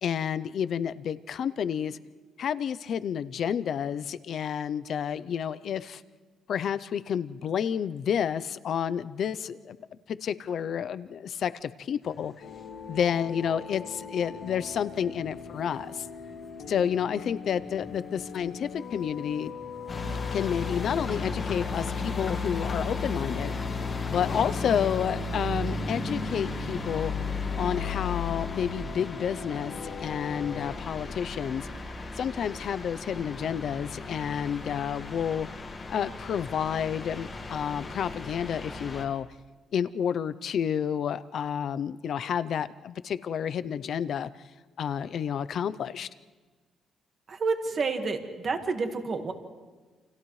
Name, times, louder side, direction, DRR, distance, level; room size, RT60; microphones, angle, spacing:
voice 1, 0.0-2.0 2.4-6.0 6.5-9.8 10.1-12.3 12.9-16.1 16.7-19.5 20.3-23.5 24.1-27.1 27.6-31.7 32.2-35.5 35.9-39.3 39.7-44.3 44.8-46.1, left 8 dB, 50° left, 14 dB, 0.5 m, -30 dB
sound 1, 12.0-23.3, left 1 dB, ahead, 2.1 m, -53 dB
sound 2, 12.4-30.7, left 5 dB, 75° left, 3.6 m, -42 dB
sound 3, 19.9-39.0, left 3 dB, 25° left, 1.7 m, -34 dB
voice 2, 47.3-49.3, right 4 dB, 35° right, 5 dB, 1.6 m, -29 dB
29.5 x 28.0 x 3.2 m, 1.4 s
cardioid pair, 165°, 0 cm